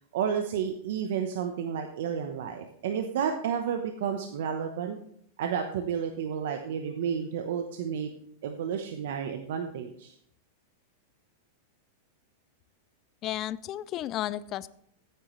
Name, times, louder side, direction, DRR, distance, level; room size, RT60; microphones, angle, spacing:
voice 1, 0.1-5.0 5.4-8.1 8.4-10.1, right 7 dB, 70° right, 5 dB, 1.0 m, -31 dB
voice 2, 13.2-14.7, left 13 dB, 30° left, 18 dB, 0.4 m, -33 dB
14.0 x 9.1 x 3.2 m, 0.68 s
supercardioid pair, 155°, 0 cm